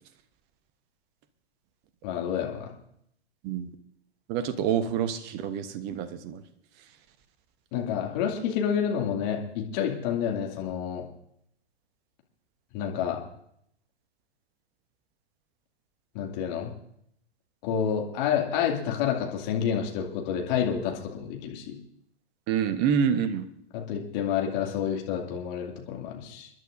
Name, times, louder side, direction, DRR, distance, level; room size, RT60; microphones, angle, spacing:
voice 1, 2.0-2.7 7.7-11.0 12.7-13.2 16.1-16.7 17.6-21.8 23.7-26.5, left 8 dB, 40° left, 1 dB, 2.4 m, -29 dB
voice 2, 4.3-6.4 22.5-23.5, right 8 dB, 30° right, 10 dB, 1.1 m, -27 dB
29.5 x 10.5 x 2.6 m, 0.72 s
figure-of-eight pair, 105°, 33 cm